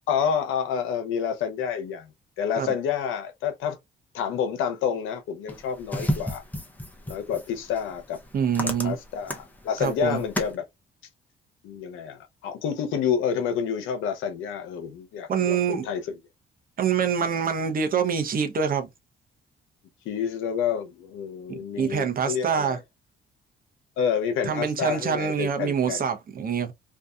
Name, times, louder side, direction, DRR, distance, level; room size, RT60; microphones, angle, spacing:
voice 1, 0.1-2.1 2.4-3.8 4.1-6.4 7.1-8.2 8.8-10.6 11.6-16.2 20.0-22.8 24.0-26.1, left 7 dB, 90° left, 0.7 m, -28 dB
sound 1, 5.5-10.6, equal, 10° left, 0.7 m, -33 dB
voice 2, 8.3-9.0 9.8-10.2 15.3-15.9 16.8-18.9 21.5-22.8 24.4-26.7, right 7 dB, 45° right, 0.7 m, -25 dB
2.7 x 2.3 x 2.3 m
cardioid pair, 90°, 20 cm